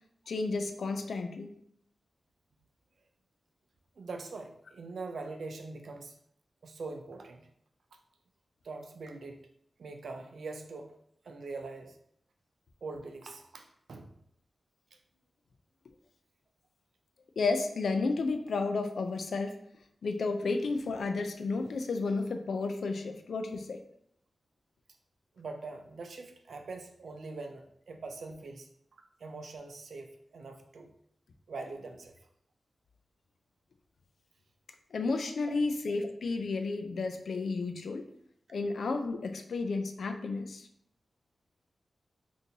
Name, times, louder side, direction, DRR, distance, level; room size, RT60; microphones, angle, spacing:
voice 1, 0.3-1.5 17.4-19.5 20.0-23.8 34.9-38.0 38.5-40.7, left 3 dB, 85° left, 6 dB, 0.4 m, -32 dB
voice 2, 4.0-6.2 6.6-7.5 8.6-9.4 9.8-10.9 11.2-12.0 12.8-14.1 25.4-28.7 29.2-30.9 31.5-32.1, right 3 dB, 80° right, 4 dB, 0.4 m, -43 dB
3.7 x 2.6 x 2.8 m, 0.69 s
wide cardioid pair, 80°, 0 cm